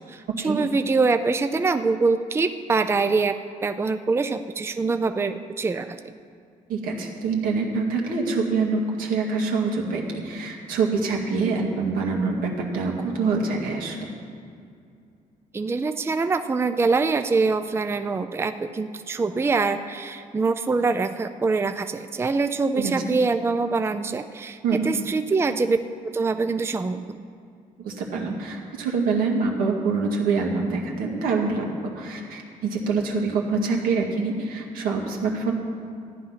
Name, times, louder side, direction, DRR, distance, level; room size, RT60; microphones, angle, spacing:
voice 1, 0.0-3.3 3.6-6.1 15.5-24.6 24.8-25.8 26.1-27.3, right 4 dB, 15° right, 9 dB, 0.5 m, -24 dB
voice 2, 6.7-14.1 22.8-23.2 24.6-24.9 27.8-31.6 32.0-35.5, right 4 dB, 90° right, 0 dB, 2.1 m, -25 dB
14.0 x 9.9 x 5.8 m, 2.4 s
cardioid pair, 110°, 15 cm